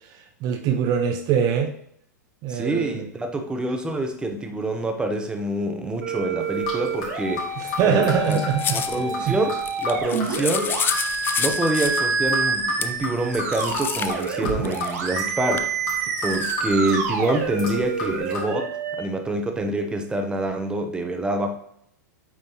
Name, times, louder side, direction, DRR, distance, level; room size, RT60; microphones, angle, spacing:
voice 1, 0.1-1.7 2.4-3.0 7.6-9.4, right 7 dB, 40° right, 5 dB, 0.6 m, -24 dB
voice 2, 2.5-8.4 8.7-10.8 11.4-15.7 16.2-21.6, right 1 dB, 10° right, 4 dB, 0.8 m, -26 dB
sound 1, 6.0-19.0, right 4 dB, 65° right, 1.4 m, -28 dB
sound 2, 6.4-18.4, left 3 dB, 45° left, 2.2 m, -34 dB
sound 3, 8.3-9.0 9.6-12.1 12.8-12.9 13.5-15.1 15.6-15.7 16.2-16.7, left 8 dB, 20° left, 0.4 m, -29 dB
8.6 x 3.8 x 2.9 m, 0.70 s
hypercardioid pair, 105°, 10 cm